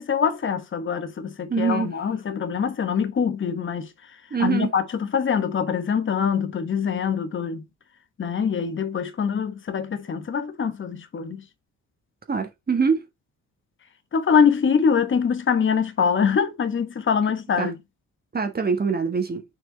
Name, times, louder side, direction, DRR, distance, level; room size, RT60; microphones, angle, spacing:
voice 1, 0.0-3.9 4.4-7.6 8.2-11.4 14.1-17.8, left 6 dB, 40° left, 1.3 m, -24 dB
voice 2, 1.5-1.9 4.3-4.7 12.3-13.0 17.6-17.7 18.3-19.4, right 5 dB, 30° right, 1.5 m, -24 dB
6.6 x 4.4 x 4.1 m
cardioid pair, 90°, 30 cm